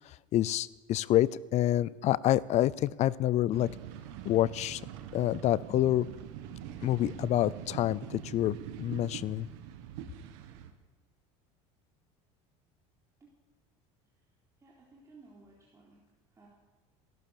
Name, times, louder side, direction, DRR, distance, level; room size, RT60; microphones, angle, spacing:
voice 1, 0.3-3.7 4.2-4.8 5.1-6.1 6.8-9.5, left 13 dB, 45° left, 21 dB, 0.5 m, -27 dB
sound 1, 3.5-10.7, right 10 dB, 80° right, 1.6 m, -44 dB
voice 2, 14.6-16.0 16.4-16.5, right 3 dB, 20° right, -4 dB, 3.6 m, -57 dB
16.5 x 12.0 x 7.1 m, 1.2 s
supercardioid pair, 110°, 15 cm